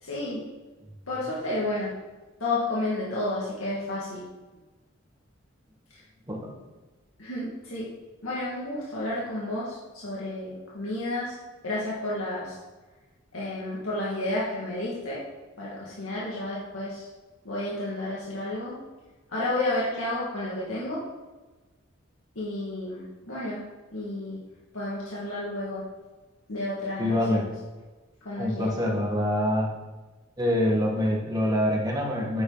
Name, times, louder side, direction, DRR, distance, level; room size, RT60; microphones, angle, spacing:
voice 1, 0.0-0.4 1.1-1.9 2.4-4.2 7.2-7.9 8.2-11.4 11.6-12.5 13.3-15.2 15.6-17.0 17.4-18.7 19.3-21.0 22.4-23.6 23.9-24.4 24.7-25.8 26.5-27.4 28.2-28.7, left 2 dB, 85° left, -7 dB, 2.3 m, -31 dB
voice 2, 27.0-27.5 28.4-29.7 30.4-32.4, left 1 dB, 20° right, -2 dB, 1.8 m, -25 dB
9.4 x 8.5 x 4.1 m, 1.2 s
head